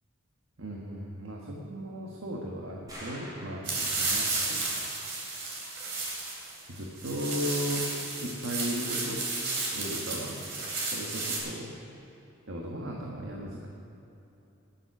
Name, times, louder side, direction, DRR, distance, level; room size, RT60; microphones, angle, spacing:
voice 1, 0.6-4.7 6.7-7.9 8.2-9.2 9.7-10.4 10.8-11.8 12.5-13.7, equal, 75° right, -1 dB, 1.4 m, -36 dB
sound 1, 2.9-4.4, equal, 20° right, 3.6 m, -46 dB
sound 2, 3.6-11.4, right 3 dB, 60° right, 3.3 m, -33 dB
20.0 x 7.5 x 6.1 m, 3.0 s
head